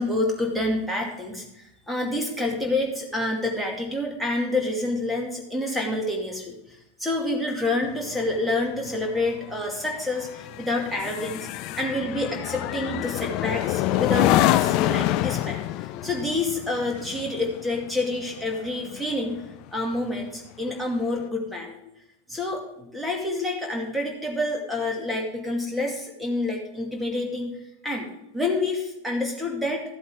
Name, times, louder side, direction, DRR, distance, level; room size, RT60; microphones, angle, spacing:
voice 1, 0.0-11.5 11.7-19.4 19.7-21.8 22.3-29.8, left 2 dB, ahead, 1 dB, 2.4 m, -28 dB
sound 1, 7.8-19.5 19.9-20.2, left 14 dB, 40° left, 0.4 m, -27 dB
13.5 x 7.8 x 3.7 m, 0.85 s
figure-of-eight pair, 90°, 0 cm